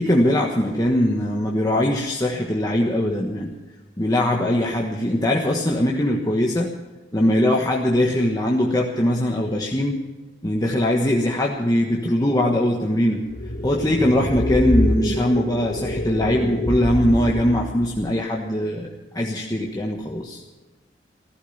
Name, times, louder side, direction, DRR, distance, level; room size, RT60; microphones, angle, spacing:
voice 1, 0.0-3.5 4.0-6.7 7.1-10.0 10.4-13.2 13.6-18.9 19.1-20.4, left 1 dB, 20° left, -1 dB, 1.3 m, -21 dB
sound 1, 13.3-18.1, equal, 50° left, 1.4 m, -26 dB
15.5 x 14.5 x 5.6 m, 1.2 s
head